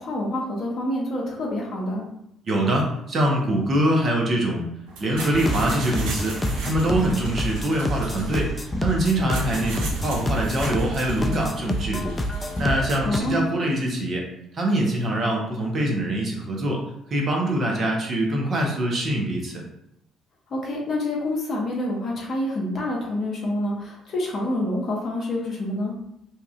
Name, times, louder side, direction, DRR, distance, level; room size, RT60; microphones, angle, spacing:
voice 1, 0.0-2.0 13.0-13.5 20.5-25.9, left 1 dB, 50° left, -3 dB, 0.7 m, -27 dB
voice 2, 2.4-4.7 5.0-8.5 8.8-12.1 12.6-14.2 14.5-16.8 17.1-19.6, right 1 dB, 45° right, 0 dB, 0.9 m, -24 dB
sound 1, 4.9-13.5, right 3 dB, 70° right, 0.6 m, -37 dB
sound 2, 5.2-13.2, left 1 dB, 25° left, 0.3 m, -28 dB
2.8 x 2.4 x 2.4 m, 0.79 s
hypercardioid pair, 50°, 0 cm